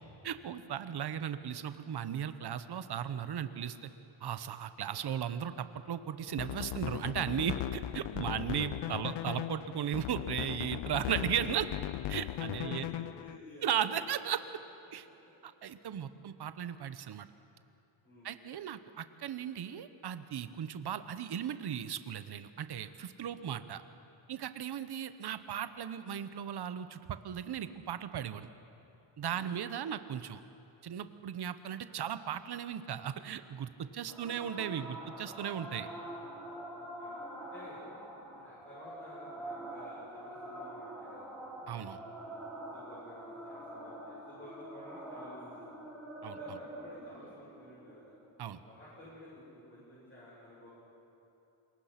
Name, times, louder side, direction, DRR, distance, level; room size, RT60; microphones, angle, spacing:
voice 1, 0.2-3.8 4.2-11.7 12.1-12.9 13.6-14.4 14.9-15.0 15.4-17.3 18.2-23.8 24.3-28.5 29.2-30.4 30.8-35.9 41.7-42.0 46.2-46.6 48.4-48.6, right 9 dB, 50° right, 12 dB, 1.0 m, -36 dB
voice 2, 4.9-5.3 12.6-14.2 18.0-18.3 23.2-23.7 29.2-29.4 34.0-34.4 36.6-37.8 38.3-41.3 42.2-45.6 46.3-48.1 48.6-50.7, left 1 dB, 25° left, -9 dB, 7.4 m, -53 dB
sound 1, 6.3-13.4, left 14 dB, 60° left, 0.5 m, -38 dB
sound 2, 34.1-49.1, right 1 dB, 5° left, 4.3 m, -45 dB
27.5 x 22.0 x 5.9 m, 2.9 s
wide cardioid pair, 150°, 49 cm